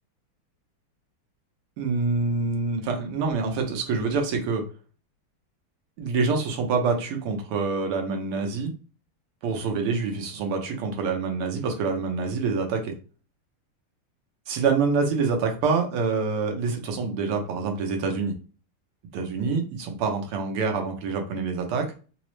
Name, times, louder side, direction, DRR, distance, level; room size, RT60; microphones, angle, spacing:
voice 1, 1.8-4.6 6.0-8.7 9.4-12.9 14.5-18.3 19.1-21.9, right 4 dB, 80° right, 3 dB, 1.7 m, -26 dB
4.6 x 2.0 x 3.0 m, 0.36 s
omnidirectional pair, 2.4 m